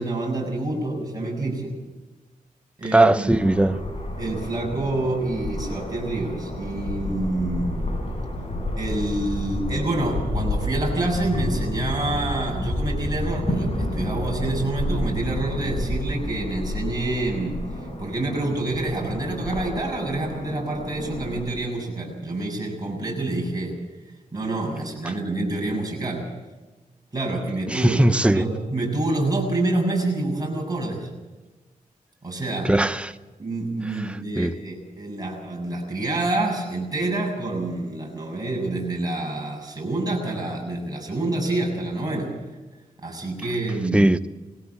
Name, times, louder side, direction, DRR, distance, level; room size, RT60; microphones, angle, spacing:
voice 1, 0.0-1.7 2.8-3.3 4.2-7.8 8.8-17.6 18.0-23.8 24.3-26.3 27.1-31.1 32.2-32.7 33.4-42.3 43.0-44.1, right 2 dB, 25° right, 7.2 m, -27 dB
voice 2, 2.9-3.8 27.7-28.4 32.6-33.1 34.4-34.5 43.9-44.3, right 1 dB, 10° right, 0.8 m, -19 dB
sound 1, 3.4-21.4, left 1 dB, 45° left, 7.6 m, -30 dB
20.0 x 16.5 x 8.3 m
cardioid pair, 70°, 14 cm